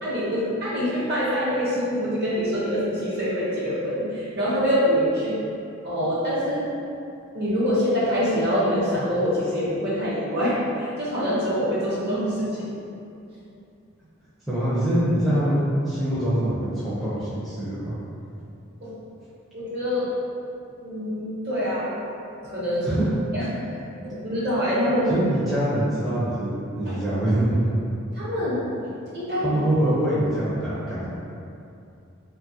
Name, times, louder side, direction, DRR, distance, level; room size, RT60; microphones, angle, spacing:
voice 1, 0.0-5.4 5.8-6.8 7.3-12.8 18.8-18.9 19.5-20.1 20.8-22.0 22.4-23.0 23.3-23.7 23.9-25.2 26.9-27.0 28.1-28.7 29.1-29.4, equal, 50° right, -8 dB, 0.8 m, -25 dB
voice 2, 14.5-17.9 22.8-23.1 25.1-27.7 29.4-31.1, right 1 dB, ahead, -12 dB, 0.4 m, -24 dB
3.0 x 2.2 x 2.6 m, 2.6 s
head